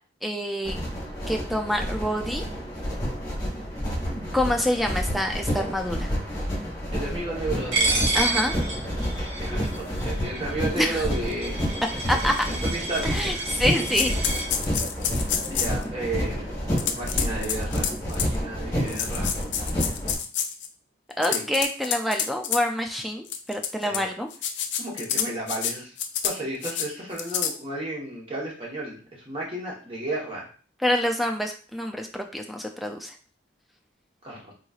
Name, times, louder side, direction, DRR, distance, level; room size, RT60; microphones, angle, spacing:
voice 1, 0.2-0.8 1.3-2.4 4.3-6.1 8.1-8.6 10.8-11.0 12.1-12.4 13.0-14.1 21.2-24.3 30.8-33.1, left 1 dB, ahead, 4 dB, 0.3 m, -26 dB
sound 1, 0.6-20.2, equal, 20° left, 1.2 m, -29 dB
voice 2, 6.9-8.3 9.1-11.6 12.0-13.5 14.3-14.4 15.5-19.3 21.2-21.4 23.8-24.1 24.8-25.9 26.2-30.5 34.2-34.5, right 2 dB, 30° right, -4 dB, 1.1 m, -33 dB
Coin (dropping), 7.7-14.5, right 3 dB, 75° right, 0.9 m, -29 dB
sound 2, 10.0-10.1 10.8-10.9 11.3-11.4 12.3-12.4 13.0-13.5 13.9-15.8 16.8-18.4 18.9-20.7 21.1-22.6 23.3-24.0 24.3-25.7 26.0-26.3 26.6-26.9 27.2-27.5, left 8 dB, 65° left, 0.4 m, -28 dB
3.8 x 3.0 x 2.4 m, 0.41 s
head